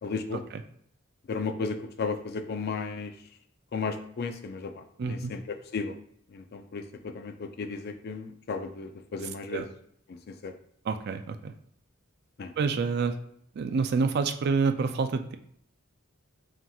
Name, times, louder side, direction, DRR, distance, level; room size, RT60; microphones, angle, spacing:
voice 1, 0.0-0.4 1.3-3.1 3.7-4.7 5.0-5.4 5.7-5.9 6.3-9.6 10.4-10.5 12.4-12.5, left 4 dB, 50° left, 8 dB, 0.4 m, -34 dB
voice 2, 5.0-5.3 9.2-9.7 10.8-11.5 12.6-13.2 13.6-15.4, right 4 dB, 50° right, 8 dB, 0.4 m, -28 dB
5.8 x 2.9 x 2.3 m, 0.66 s
head